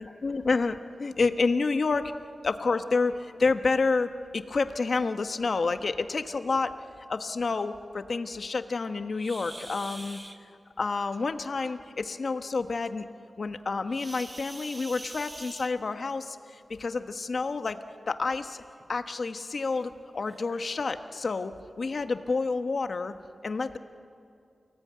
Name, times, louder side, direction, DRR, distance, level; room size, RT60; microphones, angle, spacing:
voice 1, 0.0-2.1 2.4-6.7 7.1-10.2 10.8-13.0 13.4-17.8 18.1-18.6 18.9-21.5 21.8-23.1 23.4-23.8, left 4 dB, 55° left, 8 dB, 1.2 m, -29 dB
sound 1, 9.1-10.4 13.9-16.1 17.4-17.6 18.1-18.2 18.8-18.9 19.7-19.8 20.3-20.5, right 1 dB, 20° right, 1.4 m, -44 dB
29.5 x 18.5 x 9.6 m, 2.5 s
wide cardioid pair, 120°, 0 cm